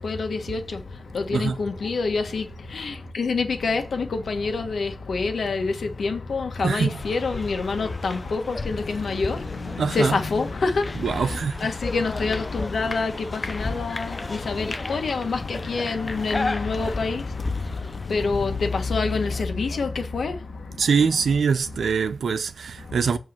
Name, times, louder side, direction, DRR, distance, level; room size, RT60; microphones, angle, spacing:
voice 1, 0.0-21.3 21.6-21.9 22.8-23.2, left 4 dB, 65° left, 1.5 m, -27 dB
sound 1, 6.9-19.4, left 3 dB, 25° left, 0.6 m, -34 dB
voice 2, 9.8-10.1 11.0-11.6 20.8-23.2, right 5 dB, 80° right, 0.7 m, -23 dB
8.1 x 4.7 x 6.0 m
wide cardioid pair, 160°, 0 cm